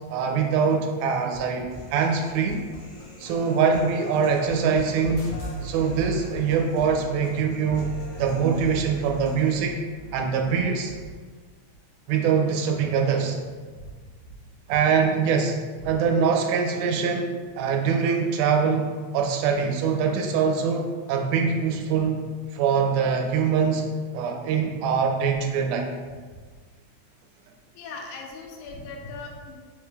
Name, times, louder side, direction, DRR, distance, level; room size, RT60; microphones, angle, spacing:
voice 1, 0.1-2.6 3.2-5.3 5.6-7.9 8.2-9.8 10.1-10.9 12.1-13.4 14.7-15.6 15.8-25.9, right 6 dB, 90° right, 3 dB, 2.0 m, -23 dB
Human voice, 1.7-9.7, left 1 dB, 45° left, 0.7 m, -45 dB
sound 1, 5.0-11.1, right 4 dB, 70° left, 1.7 m, -38 dB
voice 2, 27.8-29.6, left 3 dB, 90° left, 1 dB, 2.1 m, -39 dB
4.9 x 2.3 x 3.2 m, 1.5 s
omnidirectional pair, 3.5 m